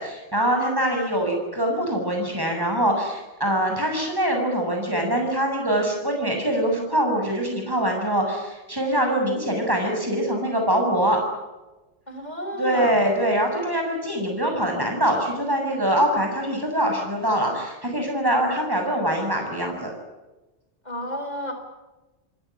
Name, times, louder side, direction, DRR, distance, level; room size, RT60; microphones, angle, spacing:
voice 1, 0.0-11.2 12.6-19.9, right 1 dB, 20° right, 2 dB, 7.2 m, -23 dB
voice 2, 12.1-13.0 20.8-21.5, equal, 40° left, 5 dB, 6.0 m, -31 dB
28.5 x 17.0 x 9.9 m, 1.1 s
omnidirectional pair, 1.2 m